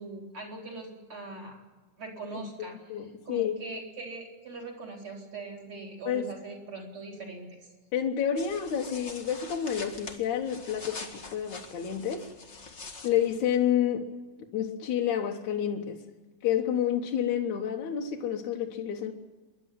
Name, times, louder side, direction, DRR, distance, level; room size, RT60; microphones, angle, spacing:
voice 1, 0.0-1.6 2.0-2.7 3.2-7.6, right 3 dB, 35° right, 2 dB, 4.9 m, -41 dB
voice 2, 2.6-3.6 6.1-6.3 7.9-12.3 13.0-14.1 14.5-16.0 16.4-19.1, left 9 dB, 65° left, 0 dB, 2.3 m, -29 dB
sound 1, 8.4-13.7, left 3 dB, 35° left, 1.2 m, -44 dB
28.0 x 11.5 x 9.2 m, 1.3 s
omnidirectional pair, 4.2 m